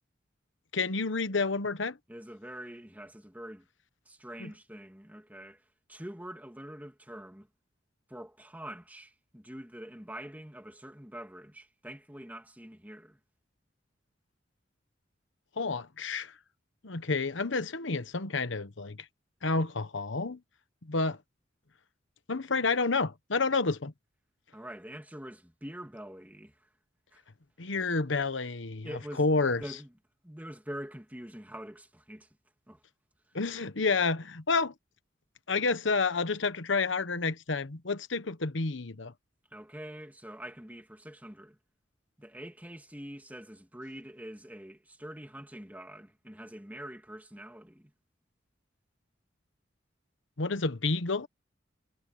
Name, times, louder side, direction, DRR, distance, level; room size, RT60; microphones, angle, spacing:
voice 1, 0.7-2.0 4.4-4.5 15.6-16.3 16.8-19.0 19.4-20.4 20.8-21.2 22.3-23.9 27.6-28.9 29.2-29.6 33.3-34.7 35.5-39.1 50.4-51.3, left 4 dB, 75° left, 1.1 m, -29 dB
voice 2, 2.1-3.7 4.1-5.6 5.9-7.5 8.1-13.2 24.5-26.5 27.1-27.2 28.8-29.9 30.2-32.3 32.7-32.8 39.5-41.6 42.2-47.9, right 1 dB, 10° right, 2.9 m, -45 dB
head